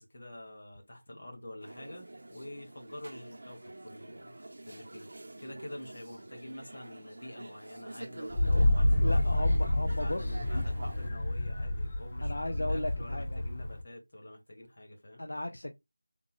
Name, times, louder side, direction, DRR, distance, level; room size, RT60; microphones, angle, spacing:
voice 1, 0.0-4.3 4.6-5.1 5.4-9.2 10.0-15.2, left 1 dB, 45° left, 1.2 m, -47 dB
sound 1, 1.6-11.1, right 2 dB, 55° right, 0.7 m, -47 dB
Wind, 8.3-13.8, left 1 dB, 25° left, 0.4 m, -28 dB
voice 2, 9.0-10.4 12.2-13.4 15.2-15.7, left 1 dB, 75° left, 0.5 m, -36 dB
3.7 x 2.3 x 3.0 m
figure-of-eight pair, 175°, 0 cm